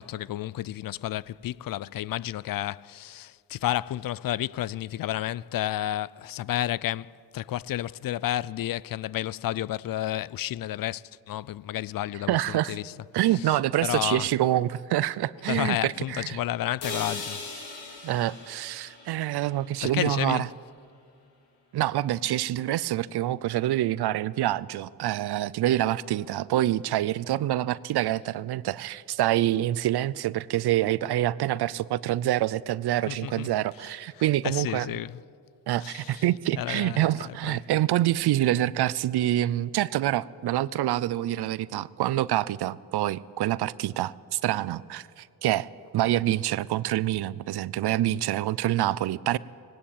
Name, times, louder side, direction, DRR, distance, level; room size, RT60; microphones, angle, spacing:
voice 1, 0.0-12.9 13.3-14.3 15.5-17.5 19.8-20.5 33.1-33.5 34.4-35.2 35.8-36.2 36.5-37.6, left 13 dB, 60° left, 0.5 m, -31 dB
voice 2, 12.3-12.8 13.1-16.4 18.0-20.5 21.7-34.9 35.7-45.7 45.9-49.4, right 14 dB, 75° right, 0.6 m, -26 dB
sound 1, 16.8-20.8, left 3 dB, 75° left, 4.3 m, -40 dB
19.0 x 17.5 x 8.7 m
cardioid pair, 80°, 39 cm